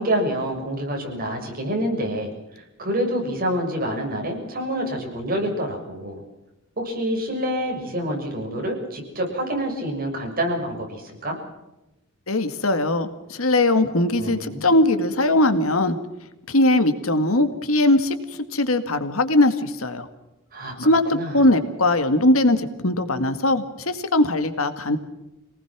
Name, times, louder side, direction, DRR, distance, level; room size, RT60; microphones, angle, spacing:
voice 1, 0.0-6.2 6.8-11.4 14.2-14.7 20.5-20.8 21.1-21.5, equal, 45° right, 1 dB, 6.8 m, -27 dB
voice 2, 12.3-16.0 16.5-18.2 18.5-20.1 20.8-25.0, left 1 dB, 75° left, 9 dB, 2.0 m, -20 dB
27.0 x 19.0 x 6.1 m, 0.97 s
head